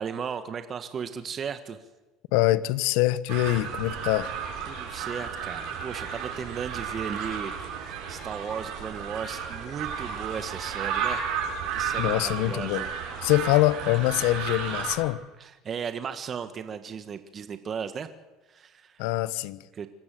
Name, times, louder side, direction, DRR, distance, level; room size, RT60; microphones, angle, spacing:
voice 1, 0.0-1.8 4.7-7.5 7.8-11.2 11.7-12.9 15.4-18.1 18.5-19.0 19.7-19.9, right 7 dB, 40° right, 9 dB, 1.4 m, -36 dB
voice 2, 2.3-4.3 12.0-12.9 13.2-15.2 19.0-19.6, left 17 dB, 75° left, 17 dB, 0.9 m, -24 dB
sound 1, 3.3-14.9, right 7 dB, 70° right, 7.3 m, -33 dB
25.5 x 14.0 x 7.7 m, 1.1 s
supercardioid pair, 90°, 0 cm